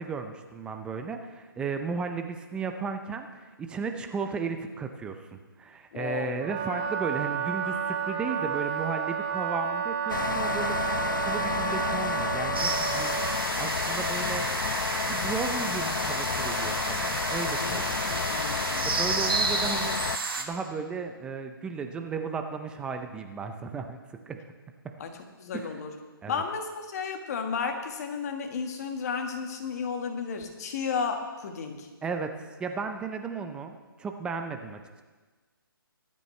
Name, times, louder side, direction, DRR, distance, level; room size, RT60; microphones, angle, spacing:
voice 1, 0.0-5.2 5.6-10.8 11.2-14.5 15.1-18.4 18.8-20.0 20.4-24.0 24.3-24.4 25.5-25.8 26.2-26.4 32.0-32.3 32.6-35.0, right 5 dB, 10° right, 6 dB, 0.5 m, -35 dB
voice 2, 5.9-6.4 17.6-18.9 25.0-25.1 25.4-25.9 26.3-31.9, left 5 dB, 45° left, 4 dB, 1.7 m, -33 dB
Wind instrument woodwind instrument, 6.4-13.4, right 7 dB, 30° right, 1.2 m, -31 dB
sound 1, 10.1-20.2, left 7 dB, 60° left, 0.4 m, -31 dB
sound 2, 12.5-20.4, right 4 dB, 75° right, 1.6 m, -31 dB
24.5 x 8.5 x 3.2 m, 1.3 s
hypercardioid pair, 150°, 12 cm